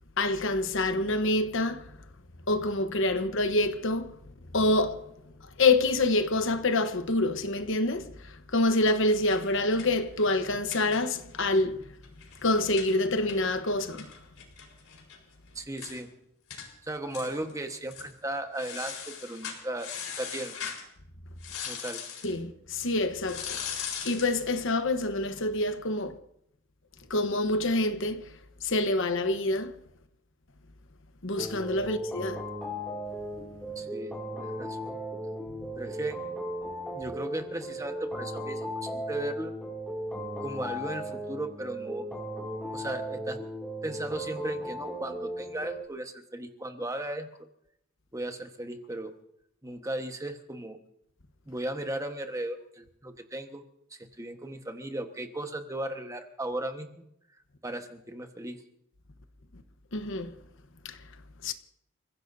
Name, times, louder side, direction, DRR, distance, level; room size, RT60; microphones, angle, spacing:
voice 1, 0.2-1.9 2.5-4.2 4.5-5.0 5.6-11.8 12.4-14.1 22.2-26.2 27.1-28.3 28.6-29.7 31.2-32.4 59.9-60.3 60.8-61.0 61.4-61.5, left 2 dB, 60° left, 1.0 m, -27 dB
sound 1, 8.7-11.4 11.7-11.8 12.0-15.2 15.5-15.6 15.8-16.0 16.5-16.7 17.1-17.5 17.9-18.1 18.6-20.8 21.4-22.3 23.2-24.4, left 7 dB, 85° left, 4.1 m, -40 dB
voice 2, 15.5-16.1 16.8-20.7 21.7-22.0 33.7-35.0 35.7-36.2 36.9-39.5 40.4-42.1 42.7-43.4 43.8-47.3 48.1-49.1 49.6-50.8 51.5-53.6 53.9-57.1 57.6-58.6, right 1 dB, 15° right, 1.3 m, -36 dB
sound 2, 31.4-45.8, equal, 5° left, 2.6 m, -36 dB
29.5 x 16.0 x 2.7 m
head